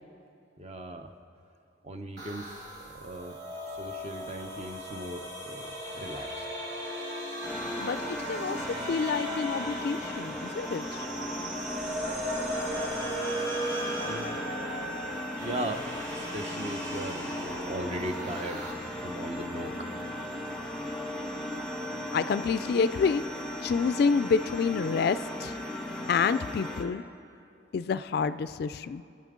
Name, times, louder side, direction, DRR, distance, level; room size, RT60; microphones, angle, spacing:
voice 1, 0.6-1.1 1.8-2.6 3.0-3.4 3.8-6.4 14.0-14.4 15.4-15.9 16.1-18.7 19.0-19.9, right 1 dB, 35° right, 6 dB, 0.7 m, -38 dB
sound 1, 2.2-18.7, equal, 65° right, 3.2 m, -37 dB
sound 2, 7.4-26.8, left 1 dB, 5° left, 1.2 m, -37 dB
voice 2, 7.8-8.6 8.9-11.1 22.1-23.2 23.6-25.6 26.1-27.0 27.7-29.0, left 5 dB, 55° left, 14 dB, 0.3 m, -28 dB
23.0 x 8.6 x 3.7 m, 2.6 s
head